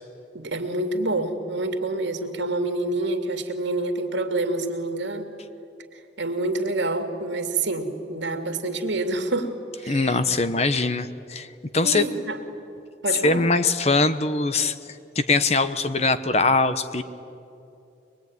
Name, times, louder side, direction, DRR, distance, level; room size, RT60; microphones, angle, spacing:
voice 1, 0.3-5.3 6.2-9.5 9.8-10.2 11.8-12.4 13.0-13.4, right 2 dB, 85° right, 5 dB, 2.5 m, -27 dB
voice 2, 9.9-11.5 11.7-12.0 13.2-17.0, left 3 dB, 35° left, 11 dB, 0.9 m, -22 dB
23.0 x 22.0 x 9.6 m, 2.7 s
head